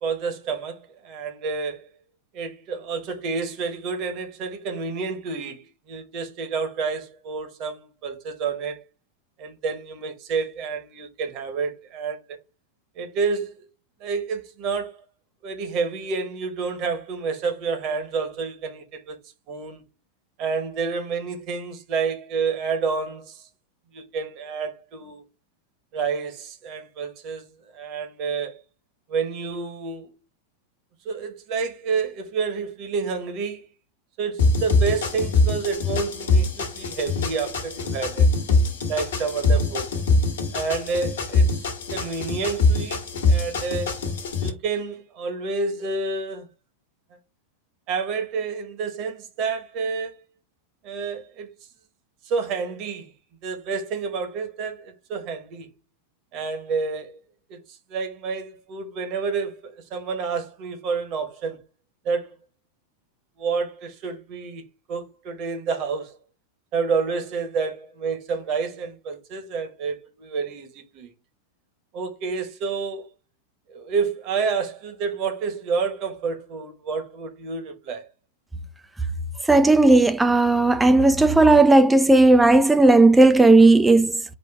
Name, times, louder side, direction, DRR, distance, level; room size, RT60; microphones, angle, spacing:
voice 1, 0.0-1.8 2.3-8.8 9.4-12.4 13.0-13.5 14.0-14.9 15.4-19.2 19.5-19.8 20.4-23.4 23.9-25.2 25.9-27.4 27.7-28.6 29.1-30.1 31.0-33.7 34.2-38.3 38.9-39.9 40.5-43.0 43.3-44.0 44.4-46.5 47.9-50.2 50.8-51.5 52.3-53.1 53.4-55.7 56.3-57.2 57.5-57.6 57.9-61.6 62.0-62.3 63.4-66.2 66.7-71.1 71.9-73.1 73.7-78.1, right 5 dB, 40° right, 1.2 m, -29 dB
sound 1, 34.4-44.5, left 3 dB, 60° left, 1.2 m, -23 dB
voice 2, 79.5-84.4, right 2 dB, 5° right, 0.4 m, -15 dB
4.4 x 2.5 x 4.6 m
figure-of-eight pair, 90°, 0 cm